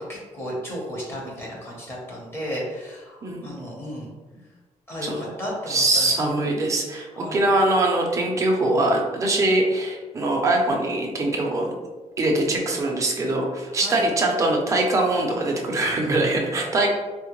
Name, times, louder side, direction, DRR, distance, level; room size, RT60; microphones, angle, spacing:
voice 1, 0.0-4.1 4.9-6.2 7.1-7.4 13.7-14.0, equal, 20° left, -5 dB, 0.8 m, -34 dB
voice 2, 5.7-11.7 12.2-16.9, right 2 dB, 25° right, 0 dB, 0.5 m, -22 dB
3.6 x 2.1 x 2.9 m, 1.3 s
wide cardioid pair, 175°, 13 cm